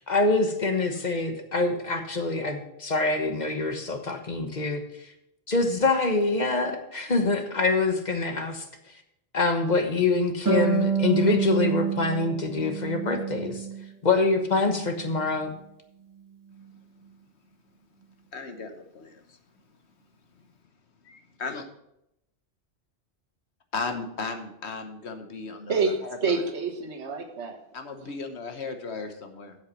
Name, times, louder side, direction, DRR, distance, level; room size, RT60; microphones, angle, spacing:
voice 1, 0.0-4.8 5.5-8.6 9.3-13.6 14.0-15.5, left 3 dB, 40° left, 5 dB, 1.2 m, -25 dB
Harp, 10.4-13.8 14.2-15.3, right 6 dB, 15° right, 2.6 m, -28 dB
voice 2, 18.3-19.4 21.0-21.6 23.7-25.7 26.0-26.2 27.7-29.6, left 4 dB, 70° left, 6 dB, 1.4 m, -36 dB
voice 3, 25.7-27.6 28.0-28.1, right 4 dB, 75° right, 4 dB, 1.5 m, -28 dB
8.1 x 7.5 x 6.0 m, 0.81 s
omnidirectional pair, 1.2 m